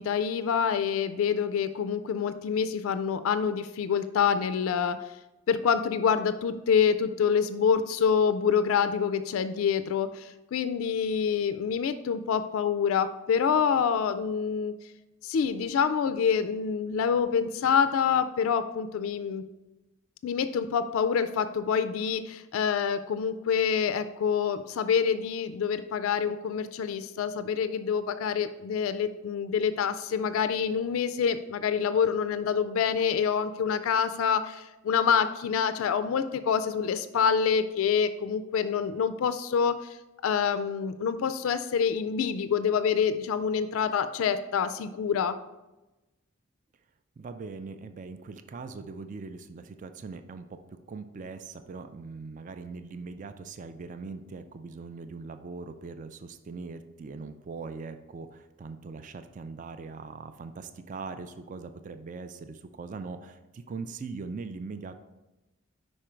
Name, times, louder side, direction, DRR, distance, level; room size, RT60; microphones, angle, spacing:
voice 1, 0.0-5.1 5.5-14.7 15.2-19.4 20.2-40.0 40.2-45.4, left 7 dB, 80° left, 12 dB, 0.3 m, -26 dB
voice 2, 47.2-64.9, right 4 dB, 35° right, 9 dB, 0.3 m, -41 dB
5.3 x 4.9 x 4.4 m, 1.0 s
head